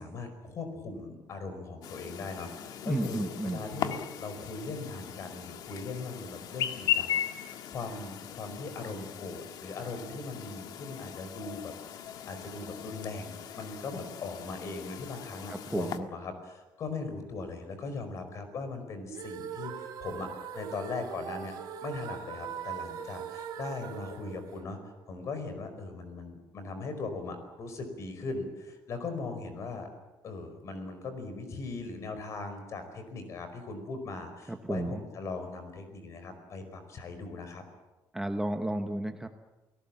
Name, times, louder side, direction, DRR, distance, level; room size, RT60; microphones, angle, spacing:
voice 1, 0.0-21.6 21.8-24.8 25.1-29.9 30.2-37.6, left 3 dB, 40° left, 8 dB, 4.9 m, -39 dB
Chirp tweet, 1.8-16.0, left 10 dB, 60° left, 1.7 m, -38 dB
voice 2, 2.9-3.7 15.5-16.1 34.5-35.0 38.1-39.3, right 1 dB, 5° right, 6 dB, 1.0 m, -32 dB
sound 1, 19.1-25.2, right 8 dB, 60° right, 3.1 m, -41 dB
29.5 x 18.5 x 7.5 m, 1.1 s
cardioid pair, 170°, 8 cm